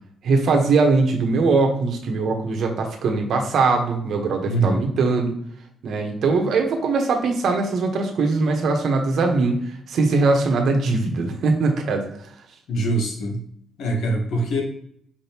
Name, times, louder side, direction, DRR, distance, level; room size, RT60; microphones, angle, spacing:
voice 1, 0.2-5.3 5.8-9.6 9.9-12.0, right 3 dB, 65° right, 3 dB, 1.0 m, -21 dB
voice 2, 4.4-4.8 12.7-13.4 13.8-14.6, right 1 dB, 70° left, 1 dB, 1.2 m, -23 dB
5.1 x 3.3 x 2.9 m, 0.68 s
cardioid pair, 90°, 0 cm